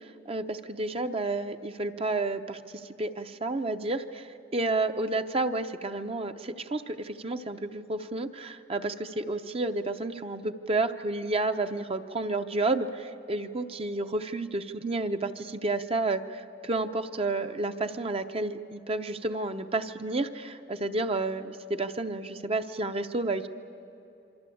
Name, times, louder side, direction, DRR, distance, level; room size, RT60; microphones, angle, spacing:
voice 1, 0.3-2.6 3.0-23.5, right 2 dB, 30° right, 8 dB, 0.8 m, -31 dB
27.0 x 24.5 x 8.6 m, 2.9 s
head